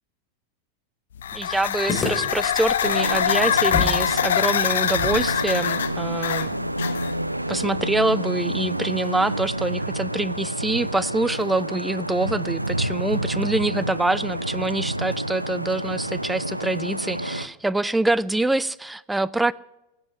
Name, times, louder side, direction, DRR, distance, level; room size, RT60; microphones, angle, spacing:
sound 1, 1.2-7.3, left 9 dB, 65° left, 0.9 m, -24 dB
voice 1, 1.3-6.7 7.5-19.5, right 2 dB, 5° right, 0.5 m, -25 dB
sound 2, 1.9-4.0 4.3-4.4 5.0-8.1, left 4 dB, 20° left, 3.2 m, -32 dB
Vehicle horn car horn honking / Traffic noise roadway noise, 2.8-17.5, right 1 dB, 85° right, 0.6 m, -29 dB
17.0 x 8.0 x 9.9 m
figure-of-eight pair, 90°, 0 cm